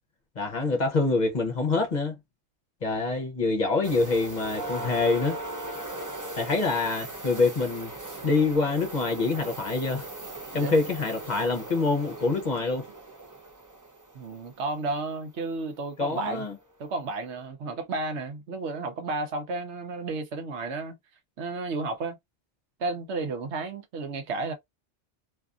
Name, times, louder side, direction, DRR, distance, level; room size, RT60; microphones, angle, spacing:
voice 1, 0.4-2.2 2.8-5.4 6.4-7.9 8.2-10.1 10.5-12.8 16.0-16.5, left 3 dB, 45° left, 0.8 m, -25 dB
sound 1, 3.8-14.5 16.5-16.6 17.1-17.3, right 2 dB, 20° right, 0.5 m, -38 dB
voice 2, 14.1-16.4 16.8-21.0 21.4-22.2 22.8-24.5, right 3 dB, 75° right, 1.0 m, -32 dB
2.7 x 2.5 x 2.4 m
omnidirectional pair, 1.2 m